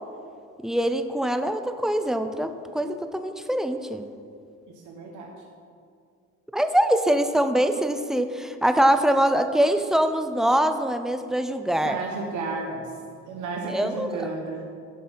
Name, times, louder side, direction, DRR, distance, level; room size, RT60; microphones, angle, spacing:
voice 1, 0.6-4.1 6.5-12.0 13.7-14.1, right 1 dB, ahead, 8 dB, 0.6 m, -23 dB
voice 2, 4.7-5.3 11.8-12.9 13.3-14.6, right 3 dB, 80° right, 0 dB, 1.2 m, -32 dB
9.4 x 6.1 x 5.7 m, 2.3 s
cardioid pair, 90°, 30 cm